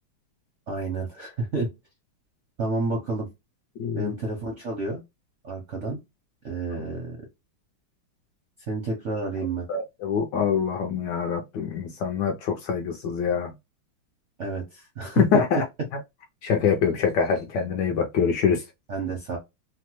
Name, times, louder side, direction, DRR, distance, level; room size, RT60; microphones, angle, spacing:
voice 1, 0.7-1.7 2.6-3.3 3.9-5.0 5.4-6.0 6.4-7.2 8.7-9.6 14.4-15.4 18.9-19.4, right 3 dB, 60° right, 0.7 m, -29 dB
voice 2, 3.8-4.1 9.7-13.5 15.1-15.6 16.4-18.6, left 7 dB, 70° left, 1.1 m, -24 dB
3.3 x 2.0 x 2.9 m
omnidirectional pair, 2.2 m